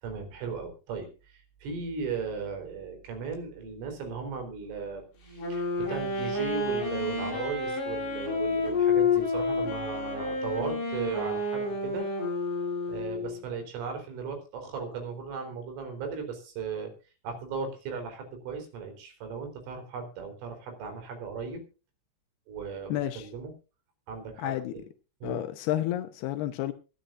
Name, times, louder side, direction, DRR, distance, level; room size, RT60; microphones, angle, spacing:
voice 1, 0.0-5.0 5.4-12.1 12.9-16.9 17.2-21.6 22.5-23.5 24.1-24.8 25.2-25.4, right 5 dB, 75° right, 6.6 m, -37 dB
Wind instrument woodwind instrument, 5.3-13.4, left 3 dB, 60° left, 10.0 m, -29 dB
voice 2, 22.9-23.3 24.4-24.7 25.2-26.7, left 13 dB, 75° left, 2.4 m, -30 dB
24.5 x 10.5 x 2.6 m
omnidirectional pair, 5.7 m